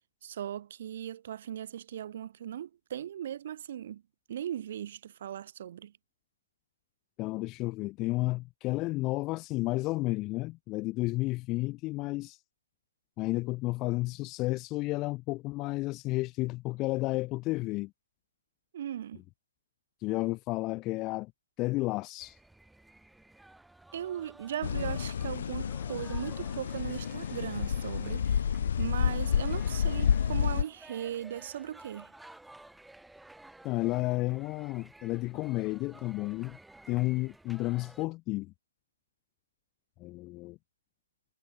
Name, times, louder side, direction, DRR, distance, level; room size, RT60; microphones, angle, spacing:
voice 1, 0.2-4.0 4.3-5.9 18.7-19.2 23.9-28.5 28.8-32.1, right 10 dB, 40° right, 4.0 m, -38 dB
voice 2, 7.2-12.4 13.2-17.9 20.0-21.3 21.6-22.4 33.6-36.6 36.9-38.5 40.0-40.6, left 20 dB, 15° left, 0.9 m, -32 dB
sound 1, 22.2-38.1, right 2 dB, ahead, 6.7 m, -54 dB
sound 2, 24.6-30.6, left 8 dB, 50° left, 0.4 m, -30 dB
hypercardioid pair, 165°, 0 cm